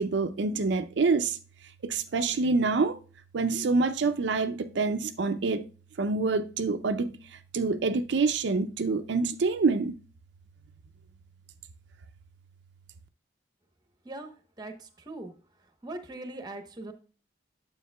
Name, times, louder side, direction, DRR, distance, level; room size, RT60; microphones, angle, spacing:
voice 1, 0.0-1.4 1.8-3.0 3.3-5.6 6.0-10.0, right 4 dB, 70° right, 0.4 m, -26 dB
voice 2, 14.6-15.3 15.8-16.9, right 2 dB, 20° right, 0.9 m, -40 dB
9.3 x 7.3 x 2.2 m
head